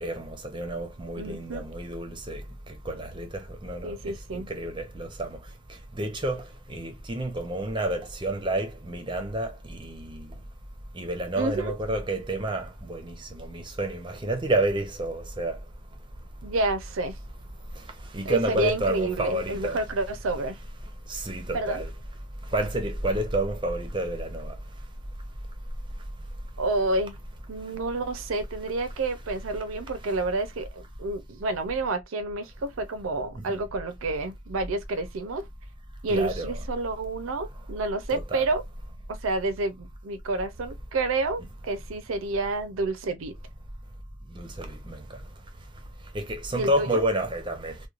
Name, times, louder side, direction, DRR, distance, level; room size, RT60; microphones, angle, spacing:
voice 1, 0.0-10.4 10.9-15.7 17.6-19.8 21.0-21.9 22.4-24.9 25.9-26.1 33.4-33.5 36.1-36.5 38.1-38.4 44.3-47.9, right 1 dB, 25° right, 0.5 m, -30 dB
voice 2, 1.2-1.6 3.8-4.5 11.4-11.8 16.4-17.2 18.2-20.6 21.5-21.8 26.6-27.2 27.5-35.5 36.0-38.6 39.1-43.3 46.5-47.0, right 2 dB, 85° right, 0.5 m, -29 dB
3.0 x 2.1 x 2.4 m
head